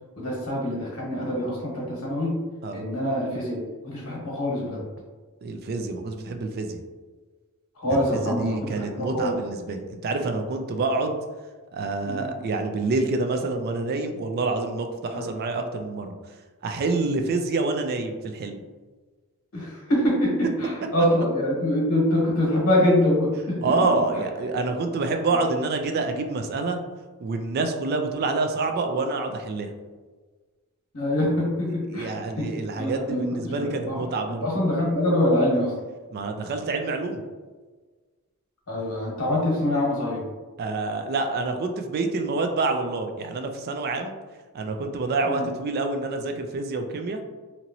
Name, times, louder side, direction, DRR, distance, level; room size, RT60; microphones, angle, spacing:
voice 1, 0.2-2.3 2.7-3.6 3.8-4.8 7.8-8.7 9.0-9.3 12.0-12.3 15.1-15.2 19.5-23.6 30.9-32.5 32.8-34.0 34.4-35.7 38.7-40.2 45.3-45.5, left 1 dB, 75° left, -4 dB, 1.1 m, -24 dB
voice 2, 5.4-6.8 7.9-11.2 11.7-16.2 16.6-18.6 23.6-26.8 27.2-29.7 31.9-34.5 36.1-37.2 40.6-44.1 44.5-47.2, right 3 dB, 45° right, 5 dB, 0.3 m, -27 dB
2.9 x 2.8 x 2.6 m, 1.3 s
head